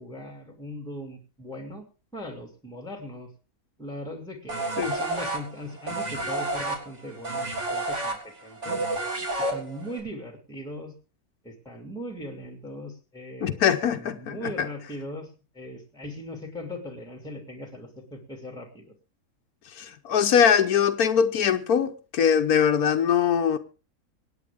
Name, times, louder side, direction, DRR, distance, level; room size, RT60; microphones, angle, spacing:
voice 1, 0.0-1.8 2.1-3.3 3.8-8.9 9.4-10.9 11.4-13.6 13.9-18.9, equal, 5° left, 2.7 m, -39 dB
sound 1, 4.5-10.0, right 2 dB, 55° right, 3.8 m, -30 dB
voice 2, 13.4-14.7 19.7-23.6, left 8 dB, 90° left, 1.4 m, -22 dB
25.0 x 9.4 x 3.5 m
omnidirectional pair, 1.5 m